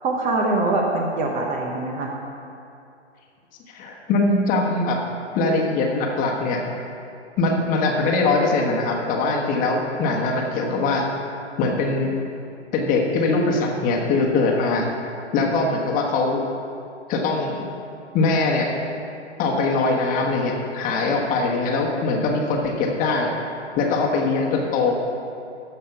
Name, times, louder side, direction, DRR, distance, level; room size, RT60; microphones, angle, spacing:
voice 1, 0.0-2.1, right 2 dB, 20° right, 0 dB, 0.8 m, -23 dB
voice 2, 3.7-5.0 5.3-6.7 7.4-11.1 11.6-12.2 12.7-14.9 15.3-16.4 17.1-17.7 18.1-18.7 19.4-23.3 23.8-24.9, left 3 dB, 25° left, 0 dB, 1.3 m, -22 dB
14.0 x 5.6 x 5.8 m, 2.6 s
hypercardioid pair, 125°, 36 cm